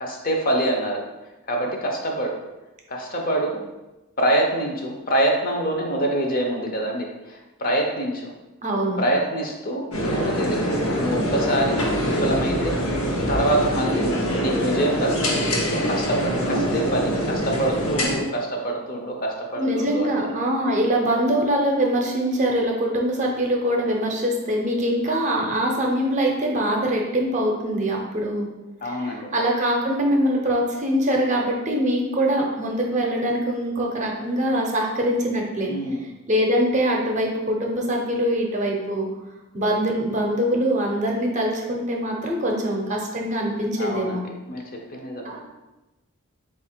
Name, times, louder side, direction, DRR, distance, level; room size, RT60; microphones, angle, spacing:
voice 1, 0.0-1.0 1.5-2.4 2.9-3.6 4.2-8.3 9.0-12.8 13.3-14.1 14.4-20.3 28.8-29.3 35.7-36.0 43.8-44.6 44.9-45.4, right 1 dB, 45° left, 1 dB, 0.6 m, -25 dB
voice 2, 8.6-9.0 19.6-28.5 28.8-35.7 36.3-39.1 39.5-44.2 45.2-45.4, equal, 35° right, 0 dB, 0.6 m, -23 dB
sound 1, 9.9-18.1, equal, 85° left, 0.9 m, -24 dB
4.0 x 2.4 x 4.3 m, 1.1 s
head